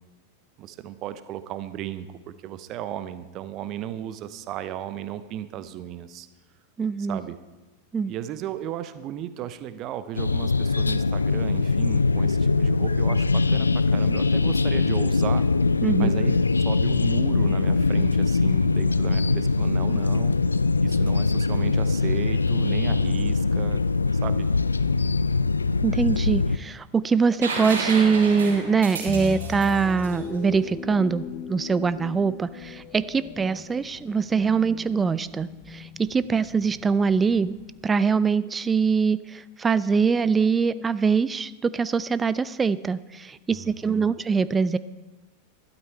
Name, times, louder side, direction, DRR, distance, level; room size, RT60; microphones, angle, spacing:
voice 1, 0.6-6.3 7.1-7.4 8.1-15.4 16.0-20.4 20.8-23.8 24.1-24.5 43.5-44.1, right 11 dB, 35° right, 12 dB, 0.7 m, -35 dB
voice 2, 6.8-7.2 7.9-8.1 15.8-16.2 25.8-37.6 37.8-44.8, right 5 dB, 15° right, 16 dB, 0.4 m, -23 dB
sound 1, 10.2-26.6, left 3 dB, 80° left, 0.3 m, -22 dB
sound 2, 27.4-31.1 33.0-33.1, right 3 dB, 65° right, 3.5 m, -32 dB
sound 3, 29.1-37.8, left 7 dB, 40° left, 1.0 m, -39 dB
13.0 x 12.0 x 4.3 m, 1.2 s
figure-of-eight pair, 90°, 0 cm